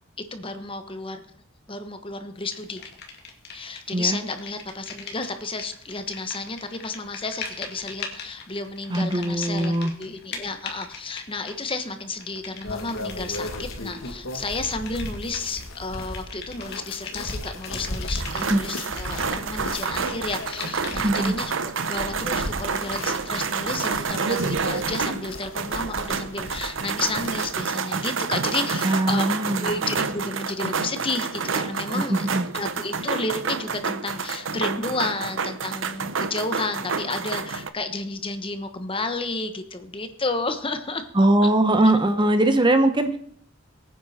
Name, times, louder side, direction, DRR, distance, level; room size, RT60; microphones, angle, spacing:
voice 1, 0.3-1.2 1.7-2.8 3.5-21.5 21.9-32.3 32.5-41.5, left 3 dB, 25° left, 8 dB, 1.2 m, -32 dB
sound 1, 2.5-3.9 4.2-21.2, left 5 dB, 55° left, 2.5 m, -41 dB
voice 2, 8.9-9.9 18.5-18.6 21.0-21.4 28.8-29.8 31.9-32.5 41.1-43.2, right 1 dB, 25° right, 9 dB, 0.9 m, -21 dB
sound 2, 12.6-27.5, left 2 dB, 80° left, 2.0 m, -36 dB
sound 3, 18.2-37.7, right 5 dB, 70° right, 0.9 m, -29 dB
22.0 x 9.6 x 4.3 m, 0.62 s
head